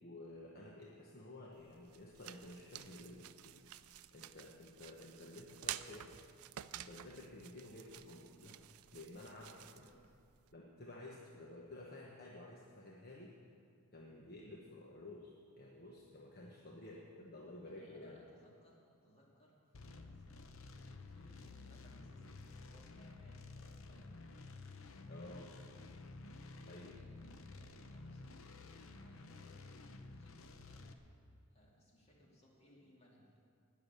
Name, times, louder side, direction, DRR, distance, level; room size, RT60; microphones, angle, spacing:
voice 1, 0.0-3.6 4.1-6.1 6.7-8.6 8.9-9.8 10.5-13.4 13.9-18.2 25.1-25.5 26.6-26.9, left 1 dB, 45° left, -2 dB, 1.1 m, -53 dB
sound 1, 1.5-10.5, right 12 dB, 75° right, 0.4 m, -51 dB
voice 2, 9.7-10.0 16.7-17.1 17.6-20.4 20.9-24.3 26.7-28.2 28.7-30.9 31.5-33.3, equal, 30° left, -3 dB, 2.5 m, -66 dB
sound 2, 19.7-30.9, left 3 dB, 65° left, 0.8 m, -52 dB
19.0 x 6.8 x 6.8 m, 2.3 s
head